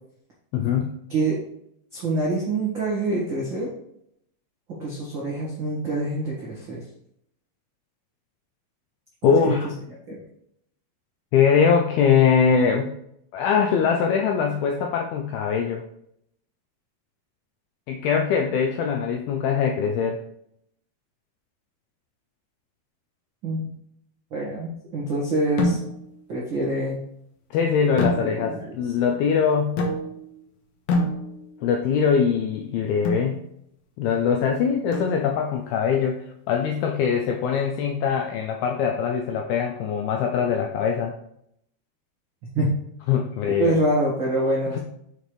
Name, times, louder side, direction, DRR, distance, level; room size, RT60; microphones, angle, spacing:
voice 1, 0.5-0.9 9.2-9.7 11.3-12.9 13.3-15.8 17.9-20.2 27.5-29.8 31.6-33.4 34.0-41.1 43.1-43.8 44.7-44.8, left 6 dB, 85° left, 2 dB, 2.2 m, -22 dB
voice 2, 1.9-3.7 4.7-6.8 9.2-9.6 10.1-10.2 23.4-23.7 24.3-25.8 26.3-27.0 28.2-28.6 42.5-42.7 43.6-44.8, right 2 dB, 85° right, -6 dB, 1.0 m, -25 dB
sound 1, 25.6-26.2 28.0-28.7 29.8-30.4 30.9-31.7 33.0-33.4 34.9-35.5, left 2 dB, 65° left, 2.2 m, -27 dB
7.0 x 6.5 x 3.2 m, 0.74 s
omnidirectional pair, 5.1 m